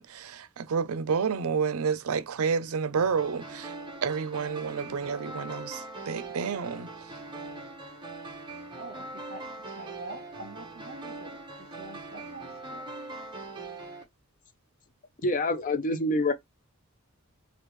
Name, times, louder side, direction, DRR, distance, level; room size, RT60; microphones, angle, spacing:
voice 1, 0.0-3.7 4.0-7.1, right 6 dB, 85° right, 0.5 m, -30 dB
sound 1, 3.0-14.0, right 2 dB, 20° right, 0.9 m, -41 dB
voice 2, 7.2-7.7 8.2-8.3 8.7-12.9, right 2 dB, 50° right, 1.1 m, -46 dB
voice 3, 15.2-16.3, left 2 dB, 40° left, 0.5 m, -26 dB
3.4 x 2.4 x 3.0 m
head